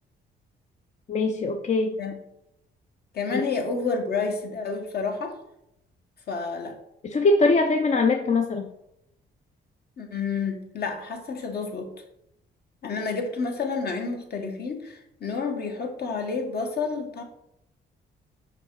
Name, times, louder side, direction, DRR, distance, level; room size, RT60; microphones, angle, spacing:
voice 1, 1.1-2.0 3.3-3.4 7.0-8.7, left 3 dB, 35° left, 4 dB, 0.6 m, -22 dB
voice 2, 3.1-5.4 6.3-6.8 10.0-11.9 12.8-17.2, left 4 dB, 55° left, 3 dB, 1.4 m, -30 dB
5.9 x 5.0 x 4.6 m, 0.84 s
cardioid pair, 90°, 20 cm